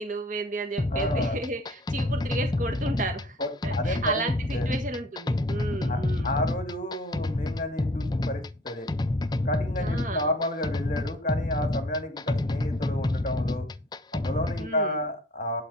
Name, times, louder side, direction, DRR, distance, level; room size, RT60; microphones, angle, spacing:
voice 1, 0.0-3.4 3.6-6.3 9.8-10.3 14.6-15.0, right 3 dB, 40° right, 5 dB, 1.5 m, -33 dB
sound 1, 0.8-14.7, left 2 dB, 20° left, 0.4 m, -28 dB
voice 2, 0.9-1.4 3.4-4.2 4.5-4.7 5.9-8.9 9.4-13.7 14.1-15.6, left 1 dB, 40° left, 6 dB, 2.3 m, -31 dB
11.5 x 4.0 x 7.0 m, 0.29 s
head